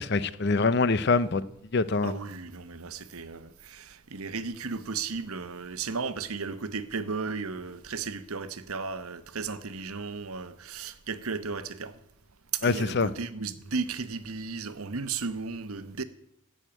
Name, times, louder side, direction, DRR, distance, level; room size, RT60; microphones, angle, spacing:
voice 1, 0.0-1.4 1.7-2.1 12.6-13.1, left 3 dB, 50° left, 0.6 m, -24 dB
voice 2, 2.0-12.0 12.5-16.0, right 4 dB, 90° right, 1.0 m, -35 dB
15.5 x 6.5 x 8.8 m
head